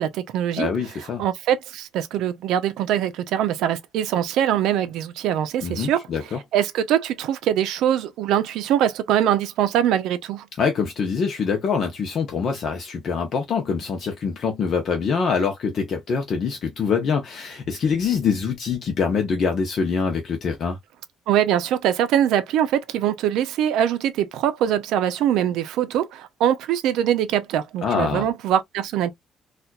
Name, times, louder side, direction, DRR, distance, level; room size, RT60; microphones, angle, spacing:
voice 1, 0.0-0.7 1.2-6.0 6.5-10.5 21.3-29.1, right 10 dB, 85° right, 0.6 m, -22 dB
voice 2, 0.6-1.2 5.6-6.4 10.6-20.8 27.8-28.3, left 5 dB, 50° left, 0.8 m, -24 dB
4.2 x 2.4 x 2.3 m
cardioid pair, 140°, 0 cm